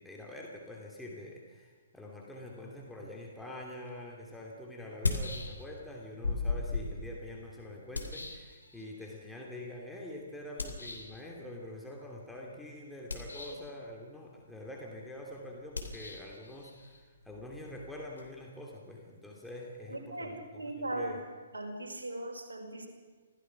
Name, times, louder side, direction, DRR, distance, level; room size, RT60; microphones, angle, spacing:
voice 1, 0.0-21.2, left 1 dB, 5° left, -2 dB, 2.9 m, -45 dB
sound 1, 3.9-4.0 4.8-5.9 6.2-9.1 10.6-11.2 13.0-13.7 15.7-18.3, left 3 dB, 75° left, 3.4 m, -37 dB
voice 2, 19.9-21.1 21.5-22.9, right 1 dB, 70° right, 0 dB, 5.1 m, -38 dB
26.0 x 17.0 x 6.0 m, 1.5 s
figure-of-eight pair, 125°, 0 cm